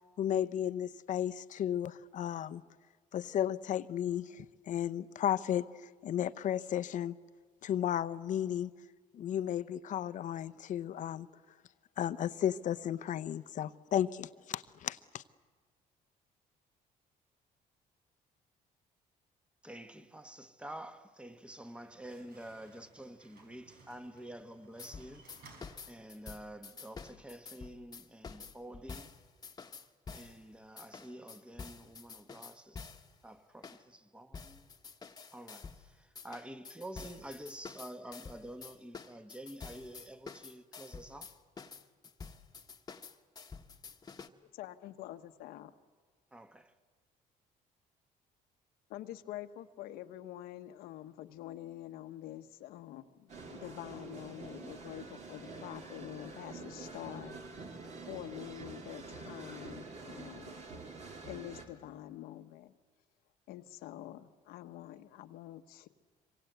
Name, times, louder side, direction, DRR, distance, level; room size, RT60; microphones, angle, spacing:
voice 1, 0.2-2.6 3.1-7.2 7.6-8.7 9.1-11.3 12.0-15.2, left 10 dB, 55° left, 0.8 m, -34 dB
voice 2, 19.6-25.3 25.9-29.1 30.1-32.9 33.2-34.7 35.3-41.3 46.3-46.7, right 1 dB, 5° right, 1.3 m, -48 dB
Slam, 21.4-26.5, right 3 dB, 75° right, 5.8 m, -60 dB
sound 1, 24.8-30.4 30.8-33.1 33.6-33.8 34.3-35.8 36.2-44.3, left 5 dB, 25° left, 1.3 m, -48 dB
voice 3, 44.5-45.7 48.9-57.8 58.1-60.6 61.2-62.7 63.5-65.9, left 13 dB, 85° left, 1.2 m, -46 dB
sound 2, 53.3-61.7, right 3 dB, 50° right, 3.4 m, -47 dB
26.5 x 24.5 x 8.1 m
cardioid pair, 110°, 15 cm